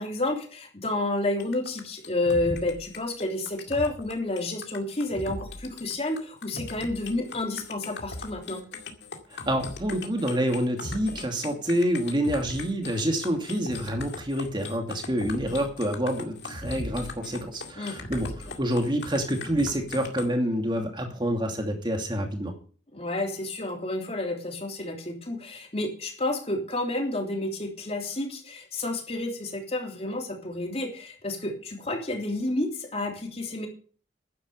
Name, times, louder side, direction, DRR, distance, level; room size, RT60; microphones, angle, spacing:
voice 1, 0.0-8.6 17.8-18.0 22.9-33.7, left 2 dB, 35° left, 2 dB, 3.1 m, -30 dB
sound 1, 1.4-20.3, left 3 dB, 65° left, 2.2 m, -39 dB
voice 2, 9.3-22.5, equal, 25° right, 4 dB, 2.6 m, -27 dB
11.5 x 9.9 x 6.8 m, 0.41 s
head